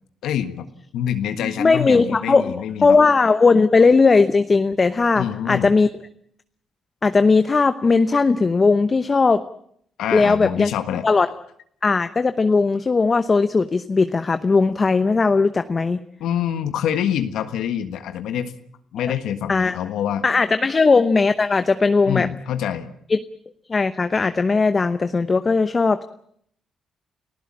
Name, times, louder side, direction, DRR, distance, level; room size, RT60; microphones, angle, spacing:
voice 1, 0.2-0.7 0.9-3.0 5.1-5.7 10.0-11.0 16.2-18.5 18.9-20.2 22.1-22.9, left 9 dB, 80° left, 9 dB, 1.5 m, -26 dB
voice 2, 1.4-2.5 2.8-5.9 7.0-9.4 10.1-10.7 11.0-11.3 11.8-16.0 19.5-19.8 20.2-22.3 23.1-23.2 23.7-26.0, left 4 dB, 30° left, 11 dB, 0.9 m, -18 dB
29.5 x 15.5 x 8.8 m, 0.69 s
cardioid pair, 90°, 0 cm